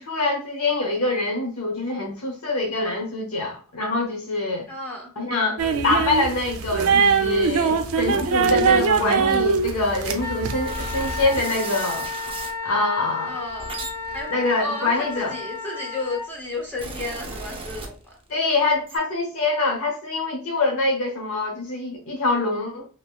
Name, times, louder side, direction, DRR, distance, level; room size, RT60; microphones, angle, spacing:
voice 1, 0.0-4.7 5.2-12.1 12.6-13.3 14.3-15.3 18.3-22.9, left 2 dB, 85° left, 0.8 m, -25 dB
voice 2, 4.7-5.1 13.3-18.2, left 2 dB, 10° left, 0.8 m, -33 dB
sound 1, 5.6-11.4, right 5 dB, 75° right, 0.4 m, -22 dB
Wind instrument woodwind instrument, 10.2-16.3, left 4 dB, 50° left, 0.9 m, -33 dB
sound 2, 10.7-12.6 13.3-15.7 16.4-18.4 18.7-19.0, right 3 dB, 25° right, 0.6 m, -36 dB
3.5 x 2.9 x 2.3 m
head